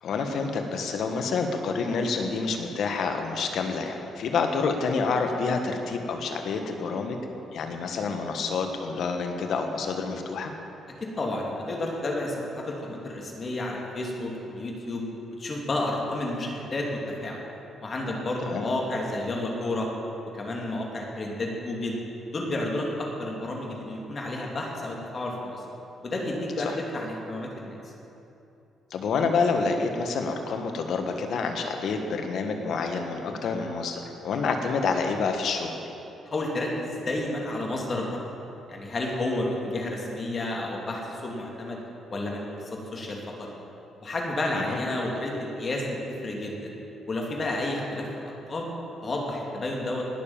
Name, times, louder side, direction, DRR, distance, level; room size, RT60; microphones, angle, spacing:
voice 1, 0.0-7.2 7.5-10.5 18.4-18.6 26.6-26.8 28.9-35.8 44.5-44.8, left 4 dB, 70° left, 4 dB, 1.5 m, -28 dB
voice 2, 11.2-15.0 15.4-17.4 17.8-19.9 20.3-22.0 22.3-25.6 26.0-26.7 26.9-27.9 36.3-38.2 38.7-41.8 42.1-43.5 44.0-46.7 47.1-48.7 49.0-50.0, left 2 dB, 40° left, -1 dB, 2.7 m, -31 dB
19.0 x 7.0 x 7.3 m, 2.9 s
cardioid pair, 90°, 0 cm